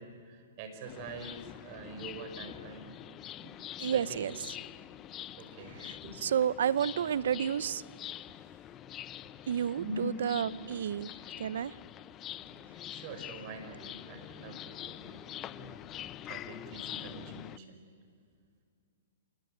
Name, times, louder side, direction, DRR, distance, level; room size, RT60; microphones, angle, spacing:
voice 1, 0.0-3.6 3.9-4.2 5.4-6.2 9.8-10.2 12.3-15.8 16.2-17.8, right 2 dB, 45° right, 6 dB, 4.8 m, -45 dB
sound 1, 0.9-17.6, left 12 dB, 25° left, 0.6 m, -45 dB
voice 2, 3.8-4.3 5.8-5.9 6.2-7.8 9.5-11.1 11.4-11.7, right 9 dB, 70° right, 20 dB, 0.6 m, -30 dB
27.0 x 20.0 x 9.3 m, 2.4 s
hypercardioid pair, 135°, 0 cm